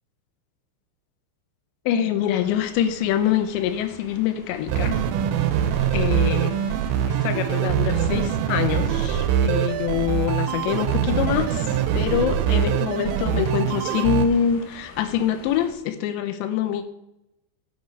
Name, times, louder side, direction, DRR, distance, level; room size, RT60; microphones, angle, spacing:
voice 1, 1.9-5.0 5.9-6.6 7.1-11.7 11.9-16.8, left 9 dB, 85° left, 10 dB, 2.9 m, -25 dB
sound 1, 2.2-15.7, left 4 dB, 60° left, 3.0 m, -45 dB
sound 2, 4.7-14.3, right 9 dB, 90° right, 2.9 m, -23 dB
9.8 x 8.2 x 4.6 m, 0.88 s
omnidirectional pair, 5.1 m